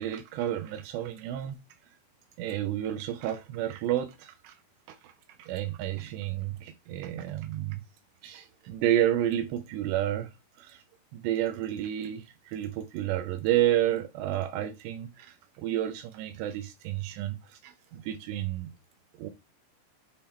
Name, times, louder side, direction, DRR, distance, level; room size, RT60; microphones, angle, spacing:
voice 1, 0.0-1.6 2.4-4.6 4.9-5.1 5.4-7.8 8.2-10.3 10.6-10.8 11.1-18.7 19.2-19.3, right 12 dB, 90° right, 2.4 m, -30 dB
7.4 x 3.7 x 4.3 m
omnidirectional pair, 5.7 m